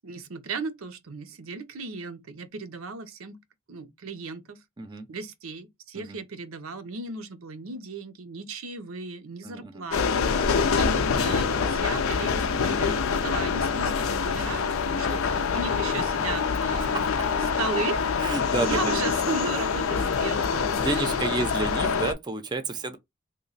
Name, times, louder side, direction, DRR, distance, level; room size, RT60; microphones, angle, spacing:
voice 1, 0.0-3.4 3.7-4.6 5.1-17.3 17.6-20.7 20.9-21.6 22.9-23.0, right 4 dB, 90° right, 0.7 m, -36 dB
voice 2, 9.4-9.8 16.8-17.1 18.2-18.9 20.8-23.0, right 3 dB, 20° right, 0.5 m, -30 dB
sound 1, 9.9-22.1, left 5 dB, 80° left, 0.5 m, -25 dB
3.0 x 2.1 x 3.9 m
head